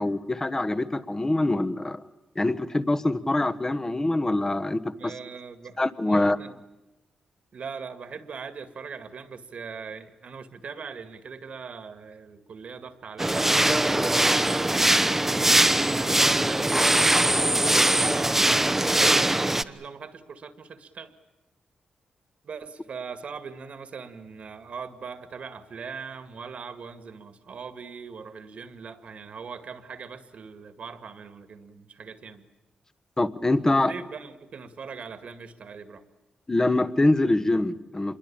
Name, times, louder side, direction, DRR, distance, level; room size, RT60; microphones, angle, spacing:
voice 1, 0.0-2.0 2.3-5.1 5.8-6.4 33.2-33.9 36.5-38.2, left 2 dB, 20° left, 13 dB, 1.3 m, -24 dB
voice 2, 5.0-6.6 7.5-17.2 17.6-21.1 22.4-32.4 33.9-36.0, right 5 dB, 65° right, 10 dB, 2.1 m, -41 dB
sound 1, 13.2-19.6, right 1 dB, 10° right, 1.0 m, -21 dB
26.5 x 22.5 x 8.8 m, 1.0 s
cardioid pair, 75°, 2 cm